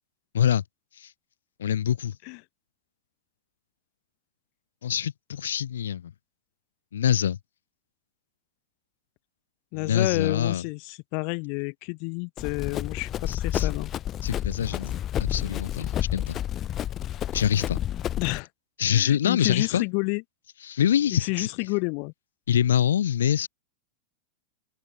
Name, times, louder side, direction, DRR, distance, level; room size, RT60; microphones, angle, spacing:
voice 1, 1.6-2.2 4.8-6.1 6.9-7.4 9.7-10.6 13.3-13.7 14.2-16.4 17.3-17.8 18.8-19.8 20.6-21.5 22.5-23.5, left 9 dB, 65° left, 1.0 m, -25 dB
voice 2, 9.7-13.9 18.2-18.5 18.9-20.2 21.1-22.1, left 40 dB or more, 45° left, 1.4 m, -30 dB
Run, 12.4-18.4, left 11 dB, 30° left, 1.3 m, -30 dB
figure-of-eight pair, 90°, 0 cm